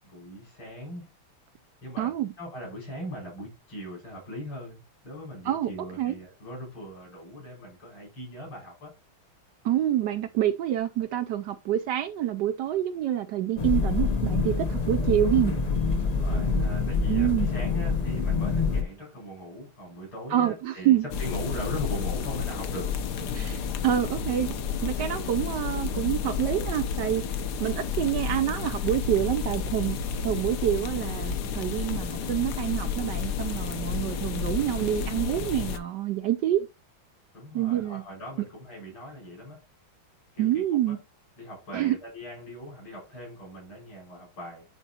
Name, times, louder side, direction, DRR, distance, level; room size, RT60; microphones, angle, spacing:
voice 1, 0.1-1.1 1.8-8.9 16.0-22.9 37.3-39.6 40.3-41.0 41.4-44.7, equal, 80° left, 6.2 m, -40 dB
voice 2, 2.0-2.3 5.4-5.7 6.0-6.1 9.6-15.5 17.1-17.5 20.3-21.0 23.3-24.6 24.8-27.2 27.6-30.0 30.2-36.7 37.5-38.0 40.4-41.0 41.7-42.0, right 12 dB, 70° right, 1.0 m, -27 dB
sound 1, 13.6-18.8, left 4 dB, 45° left, 0.5 m, -26 dB
sound 2, 21.1-35.8, left 6 dB, 60° left, 1.3 m, -31 dB
11.0 x 4.4 x 2.8 m
omnidirectional pair, 2.2 m